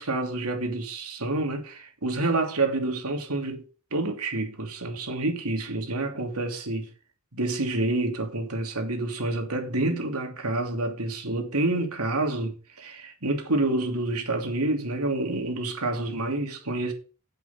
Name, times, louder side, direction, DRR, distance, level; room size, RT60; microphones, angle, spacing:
voice 1, 0.0-3.6 3.9-6.9 7.3-16.9, right 2 dB, 85° right, 2.8 m, -28 dB
8.4 x 8.2 x 5.4 m
head